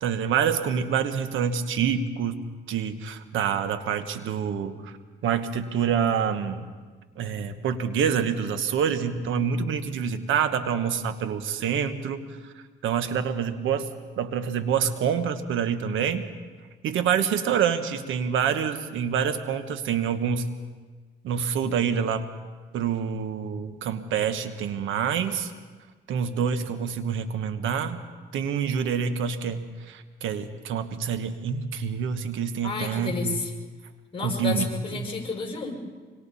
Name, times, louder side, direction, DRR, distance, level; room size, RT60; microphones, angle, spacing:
voice 1, 0.0-4.9 5.2-6.7 7.2-12.5 12.8-13.9 14.2-16.3 16.8-20.5 21.2-22.3 22.7-25.5 26.1-28.0 28.3-33.4 34.2-34.7 34.9-35.1, right 7 dB, 80° right, 10 dB, 1.3 m, -27 dB
voice 2, 32.6-33.5 34.1-35.7, left 4 dB, 25° left, -1 dB, 6.2 m, -31 dB
25.5 x 25.0 x 4.2 m, 1.4 s
cardioid pair, 90°, 20 cm